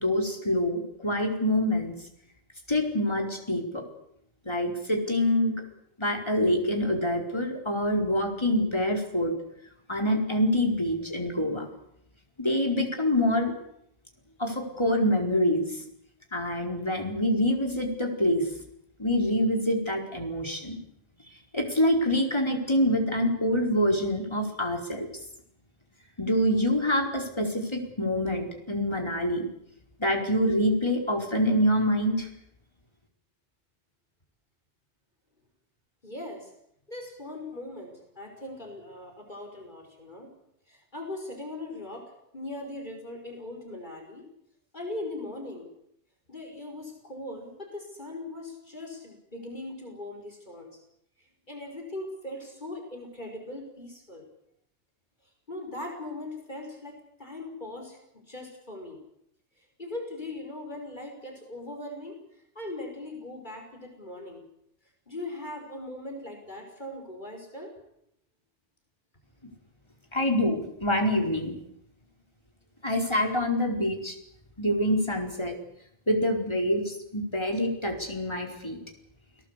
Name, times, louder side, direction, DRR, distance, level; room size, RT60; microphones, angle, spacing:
voice 1, 0.0-1.9 2.7-3.8 4.4-5.6 6.0-9.3 9.9-11.7 12.4-13.5 14.4-15.8 16.3-18.5 19.0-20.8 21.5-25.1 26.2-29.4 30.0-32.3 70.1-71.5 72.8-74.2 74.6-75.6 76.1-78.8, left 1 dB, 25° left, 2 dB, 4.7 m, -26 dB
voice 2, 36.0-36.5 36.9-40.3 40.7-44.3 44.7-45.7 46.3-50.8 51.2-54.2 55.5-59.0 59.8-64.4 65.1-67.7, left 2 dB, 45° left, 2 dB, 5.6 m, -40 dB
29.0 x 19.0 x 8.4 m, 0.77 s
omnidirectional pair, 1.1 m